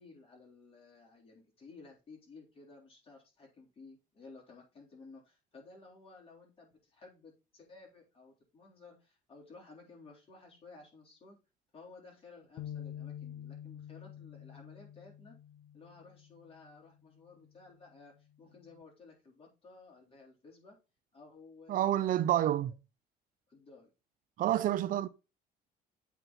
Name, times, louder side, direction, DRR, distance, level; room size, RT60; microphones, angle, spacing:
voice 1, 0.0-11.4 11.7-15.3 15.7-20.8 21.1-22.7 23.5-23.9, left 3 dB, 35° left, 3.8 m, -55 dB
sound 1, 12.6-16.8 17.3-17.5 18.4-18.8, left 10 dB, 65° left, 0.6 m, -47 dB
voice 2, 21.7-22.7 24.4-25.1, right 12 dB, 55° right, 0.5 m, -28 dB
8.1 x 4.3 x 4.1 m
cardioid pair, 110°, 17 cm